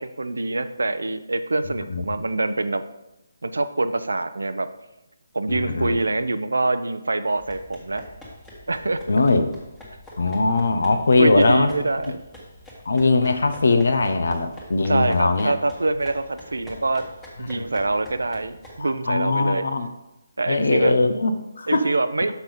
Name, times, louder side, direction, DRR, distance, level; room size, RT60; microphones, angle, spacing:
voice 1, 0.0-2.8 3.4-4.7 5.3-8.0 8.7-9.0 11.2-12.2 14.9-17.1 17.4-19.6 20.4-20.9 21.7-22.3, right 2 dB, 75° right, 11 dB, 0.6 m, -25 dB
voice 2, 5.5-6.0 9.1-9.5 10.2-11.7 12.9-15.5 17.5-17.7 18.8-19.9 20.5-21.9, left 3 dB, 65° left, 7 dB, 0.8 m, -20 dB
sound 1, 7.4-18.8, equal, 5° left, 1.5 m, -45 dB
6.0 x 5.7 x 5.2 m, 0.93 s
figure-of-eight pair, 150°, 0 cm